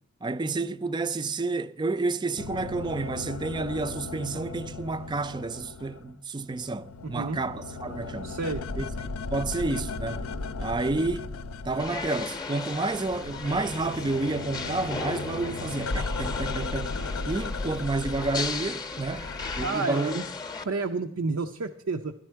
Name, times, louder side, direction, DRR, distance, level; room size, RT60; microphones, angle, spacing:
voice 1, 0.2-8.3 8.8-8.9 9.3-10.3 10.6-11.3 11.6-17.0 17.3-19.3 19.6-20.2, right 3 dB, 20° right, 0.4 m, -30 dB
sound 1, 2.4-6.2 6.5-12.4 12.7-19.7, left 3 dB, 75° left, 0.6 m, -36 dB
voice 2, 7.0-7.4 8.2-8.6 19.6-20.2 20.7-22.1, right 3 dB, 80° right, 0.6 m, -30 dB
sound 2, 11.8-20.6, left 4 dB, 20° left, 0.7 m, -36 dB
12.0 x 11.5 x 4.5 m
head